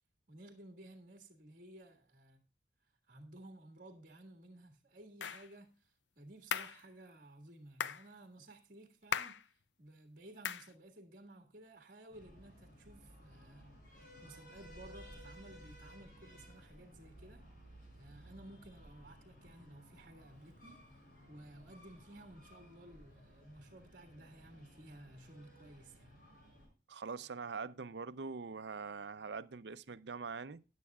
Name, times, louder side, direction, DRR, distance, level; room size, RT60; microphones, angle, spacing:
voice 1, 0.3-2.4 2.8-13.8 14.2-17.5 18.0-26.2, right 1 dB, 50° right, 1.9 m, -56 dB
clap-your-hands, 5.2-5.5 6.5-6.8 7.8-8.1 9.1-9.4 10.4-10.7, left 7 dB, 80° left, 0.5 m, -37 dB
Breathing, 12.1-26.7, equal, 50° left, 6.7 m, -57 dB
voice 2, 26.9-30.6, right 5 dB, 70° right, 0.6 m, -43 dB
15.0 x 10.0 x 2.3 m
head